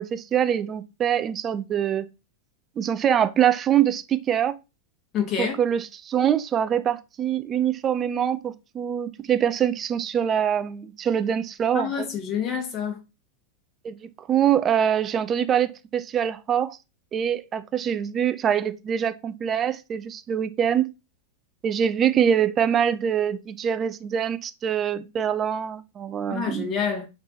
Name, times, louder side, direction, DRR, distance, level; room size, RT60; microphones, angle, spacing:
voice 1, 0.0-2.1 2.8-4.5 5.4-12.1 13.8-14.0 14.3-16.8 17.1-20.9 21.6-26.7, right 9 dB, 25° right, 0.4 m, -24 dB
voice 2, 5.1-5.6 11.7-13.0 26.3-27.1, left 7 dB, 30° left, 1.1 m, -27 dB
3.3 x 3.2 x 3.9 m
figure-of-eight pair, 90°, 0 cm